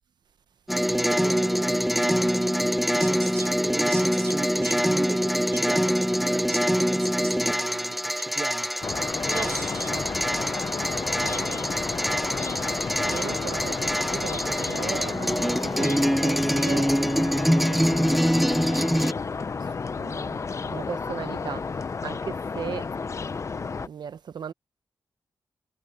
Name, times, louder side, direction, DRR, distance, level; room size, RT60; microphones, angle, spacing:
sound 1, 0.7-19.1, equal, ahead, 0.5 m, -25 dB
voice 1, 0.8-8.7 9.3-10.2, right 4 dB, 35° right, 0.8 m, -37 dB
sound 2, 8.8-23.9, left 5 dB, 40° left, 0.6 m, -31 dB
voice 2, 11.2-12.1 13.0-17.2 17.5-19.0 19.6-19.7 20.0-22.9 23.8-24.5, right 7 dB, 75° right, 0.9 m, -38 dB
wide cardioid pair, 95°, 8 cm